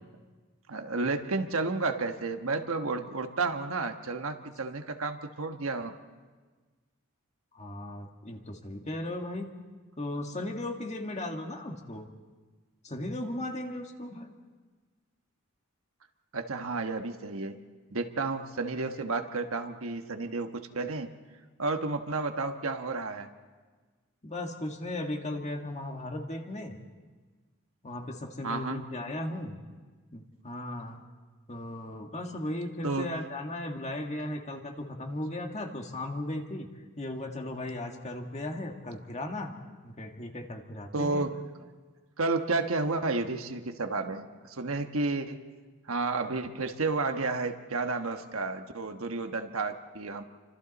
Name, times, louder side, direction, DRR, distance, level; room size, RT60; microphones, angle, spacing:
voice 1, 0.7-5.9 16.3-17.5 17.9-21.1 21.6-23.3 28.4-28.8 32.8-33.2 40.9-41.4 42.2-45.4 45.9-50.2, right 3 dB, 70° right, 6 dB, 1.3 m, -31 dB
voice 2, 7.5-9.5 10.0-12.1 12.8-14.3 24.2-26.8 27.8-29.6 30.1-31.0 31.5-36.7 37.0-39.6 39.8-41.3, left 1 dB, 30° left, 3 dB, 1.8 m, -36 dB
29.5 x 25.5 x 4.2 m, 1.4 s
head